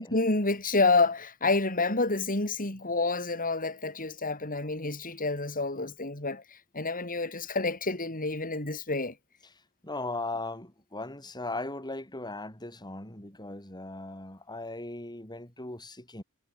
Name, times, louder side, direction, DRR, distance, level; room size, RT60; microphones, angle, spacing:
voice 1, 0.0-9.1, left 3 dB, 40° left, 6.2 m, -28 dB
voice 2, 9.8-16.2, left 2 dB, 20° left, 7.3 m, -38 dB
head